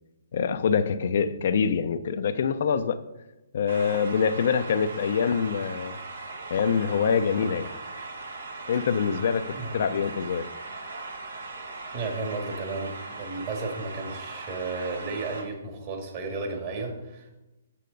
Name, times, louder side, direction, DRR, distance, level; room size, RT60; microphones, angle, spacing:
voice 1, 0.3-3.0 3.5-6.0 6.5-7.7 8.7-10.5, left 6 dB, 60° left, 11 dB, 0.5 m, -25 dB
sound 1, 3.7-15.4, right 3 dB, 75° right, 1.5 m, -39 dB
voice 2, 11.9-17.4, right 3 dB, 40° right, 2 dB, 1.9 m, -33 dB
8.4 x 6.5 x 3.9 m, 1.0 s
hypercardioid pair, 130°, 0 cm